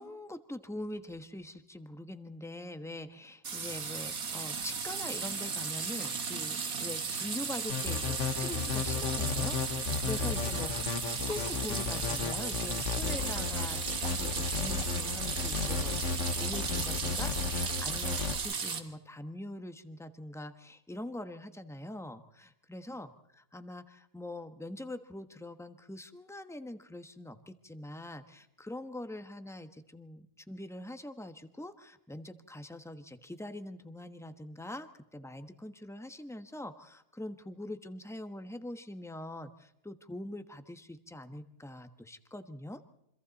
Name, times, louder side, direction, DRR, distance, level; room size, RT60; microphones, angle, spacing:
voice 1, 0.0-42.8, left 1 dB, ahead, 9 dB, 1.2 m, -43 dB
sound 1, 3.4-18.8, right 5 dB, 80° right, 2.1 m, -36 dB
sound 2, 7.7-18.4, left 5 dB, 60° left, 1.5 m, -34 dB
28.0 x 25.5 x 4.2 m, 0.81 s
omnidirectional pair, 1.5 m